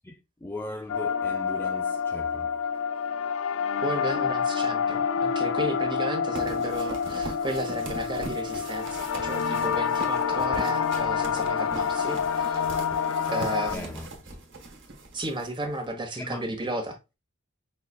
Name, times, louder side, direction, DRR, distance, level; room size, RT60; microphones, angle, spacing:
voice 1, 0.0-2.5 13.7-14.1 16.2-16.5, left 1 dB, 10° left, 0.4 m, -38 dB
sound 1, 0.9-13.8, left 6 dB, 75° left, 0.5 m, -27 dB
voice 2, 3.8-12.6 13.3-14.0 15.1-17.0, right 1 dB, 25° right, 1.1 m, -34 dB
sound 2, 6.3-15.9, right 2 dB, 65° right, 1.3 m, -41 dB
5.6 x 3.9 x 2.3 m
head